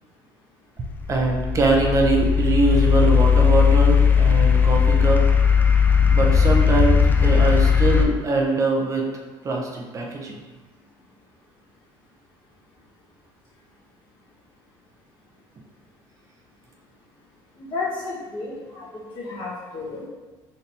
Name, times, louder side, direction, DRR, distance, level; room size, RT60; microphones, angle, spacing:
sound 1, 0.8-8.0, left 6 dB, 20° left, 0.3 m, -17 dB
voice 1, 1.1-5.2 6.1-9.1 9.4-10.4, right 3 dB, 35° right, 0 dB, 0.6 m, -22 dB
voice 2, 17.6-18.8 19.1-20.0, left 3 dB, 60° left, -5 dB, 1.4 m, -32 dB
4.1 x 3.2 x 2.7 m, 1.3 s
cardioid pair, 125°, 10 cm